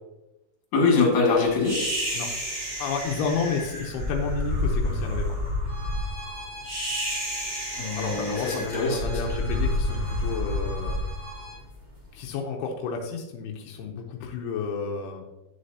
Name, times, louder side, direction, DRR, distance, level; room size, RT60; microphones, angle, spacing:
voice 1, 0.7-1.8 7.7-9.2, left 4 dB, 55° left, -1 dB, 3.2 m, -23 dB
sound 1, 1.6-12.0, left 1 dB, 20° right, 1.7 m, -30 dB
voice 2, 2.8-5.4 7.9-11.0 12.1-15.3, left 5 dB, 90° left, 1 dB, 2.8 m, -31 dB
Bowed string instrument, 5.7-11.6, left 1 dB, 60° right, 1.7 m, -44 dB
10.0 x 6.6 x 2.8 m, 1.0 s
omnidirectional pair, 4.5 m